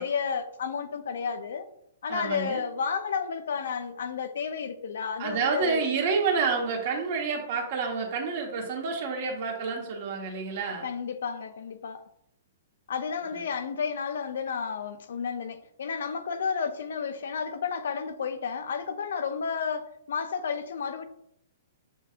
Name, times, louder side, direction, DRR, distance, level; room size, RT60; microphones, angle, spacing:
voice 1, 0.0-1.6 2.0-5.8 10.8-12.0 12.9-21.0, left 6 dB, 75° left, 0.5 m, -32 dB
voice 2, 2.1-2.6 5.2-10.9 13.3-13.4, right 5 dB, 50° right, 1.2 m, -29 dB
6.9 x 2.7 x 2.5 m
hypercardioid pair, 140°, 0 cm